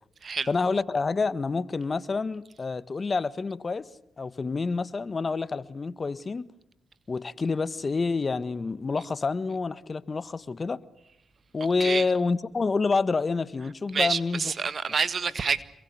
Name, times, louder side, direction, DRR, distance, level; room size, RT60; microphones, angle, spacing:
voice 1, 0.5-3.9 4.2-6.5 7.1-10.8 11.5-14.5, left 4 dB, 40° left, 1.4 m, -28 dB
voice 2, 13.9-15.6, right 5 dB, 55° right, 1.6 m, -27 dB
27.5 x 22.5 x 8.1 m
cardioid pair, 60°, 0 cm